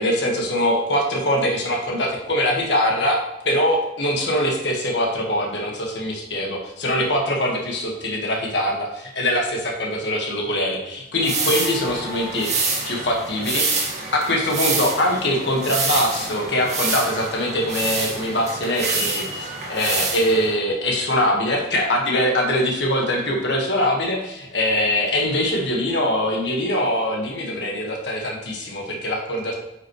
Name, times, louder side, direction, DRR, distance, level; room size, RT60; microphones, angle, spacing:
voice 1, 0.0-13.6 14.1-29.5, left 1 dB, 65° left, 0 dB, 1.6 m, -23 dB
sound 1, 11.2-20.5, right 3 dB, 40° right, 1.8 m, -27 dB
9.3 x 5.9 x 3.2 m, 0.93 s
head